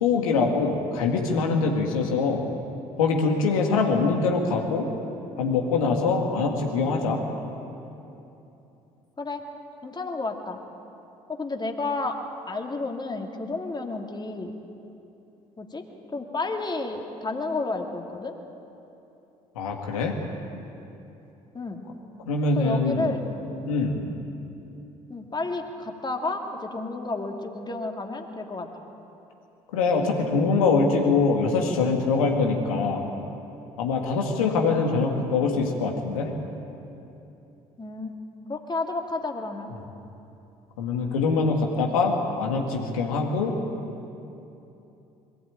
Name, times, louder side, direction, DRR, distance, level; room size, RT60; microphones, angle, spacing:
voice 1, 0.0-2.4 3.0-4.9 5.4-7.2 19.6-20.1 22.3-23.2 23.6-24.0 29.7-33.0 33.8-36.3 40.8-43.6, left 4 dB, 85° left, 2 dB, 2.2 m, -23 dB
voice 2, 9.8-10.6 11.3-12.2 12.5-14.5 15.6-15.8 16.1-18.3 21.5-21.8 22.6-23.2 25.1-28.9 37.8-38.2 38.5-39.7, left 3 dB, 25° left, 3 dB, 2.5 m, -31 dB
22.0 x 15.0 x 8.9 m, 2.9 s
hypercardioid pair, 55°, 18 cm